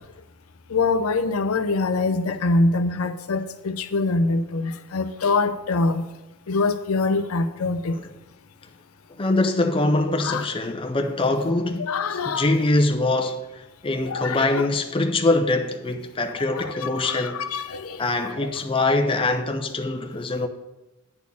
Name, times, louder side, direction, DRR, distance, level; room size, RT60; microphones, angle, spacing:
voice 1, 0.7-6.0 6.5-8.0 10.2-10.4 11.9-12.5 14.1-14.6 17.0-17.8, left 3 dB, 85° left, 0.6 m, -24 dB
voice 2, 9.2-13.5 13.8-17.4 18.0-20.5, left 2 dB, 25° left, 0.6 m, -23 dB
9.7 x 4.2 x 6.9 m
head